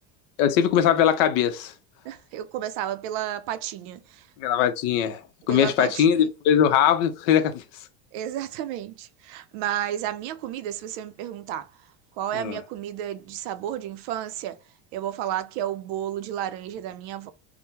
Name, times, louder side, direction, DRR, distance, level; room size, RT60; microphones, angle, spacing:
voice 1, 0.4-1.7 4.4-5.2 5.5-7.6 12.3-12.6, left 9 dB, 70° left, 0.7 m, -21 dB
voice 2, 2.1-4.0 5.5-6.0 8.1-11.7 12.2-14.6 14.9-17.3, right 11 dB, 60° right, 0.5 m, -32 dB
3.6 x 2.1 x 2.8 m
cardioid pair, 165°, 39 cm